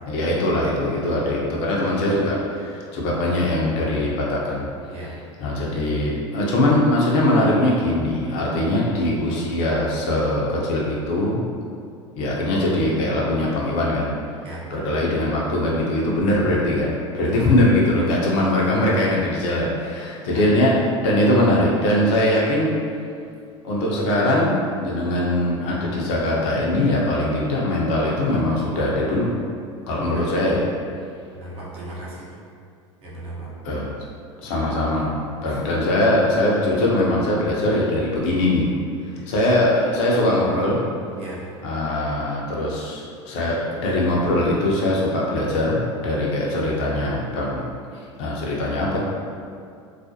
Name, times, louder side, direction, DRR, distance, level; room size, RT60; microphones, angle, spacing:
voice 1, 0.1-4.7 5.4-11.4 12.2-14.1 14.7-22.7 23.6-29.3 29.9-30.7 33.6-33.9 34.4-35.1 35.4-38.7 39.3-40.8 41.6-47.6 48.2-49.0, left 1 dB, 55° left, -4 dB, 0.6 m, -21 dB
voice 2, 17.2-17.6 20.3-20.5 30.1-30.3 31.3-32.3 33.0-33.5 35.5-35.6 39.1-39.2 41.2-41.4, right 1 dB, 40° right, -6 dB, 0.8 m, -36 dB
2.4 x 2.1 x 2.7 m, 2.3 s
hypercardioid pair, 85°, 16 cm